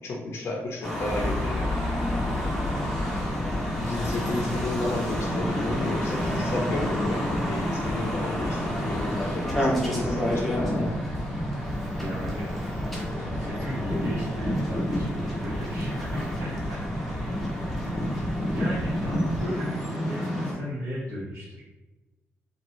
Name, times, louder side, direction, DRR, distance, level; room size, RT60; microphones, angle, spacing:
voice 1, 0.0-1.7 3.2-3.3 3.7-11.0, left 2 dB, 60° left, 0 dB, 0.5 m, -32 dB
sound 1, 0.8-20.5, equal, ahead, 0.7 m, -30 dB
sound 2, 0.9-8.6 9.2-9.3, left 2 dB, 55° right, 0.4 m, -36 dB
voice 2, 2.1-2.6 11.9-12.4 13.2-16.8 18.5-21.6, equal, 75° right, -10 dB, 0.9 m, -36 dB
sound 3, 2.2-19.4, equal, 20° right, 1.2 m, -34 dB
2.6 x 2.3 x 3.0 m, 1.1 s
cardioid pair, 145°, 5 cm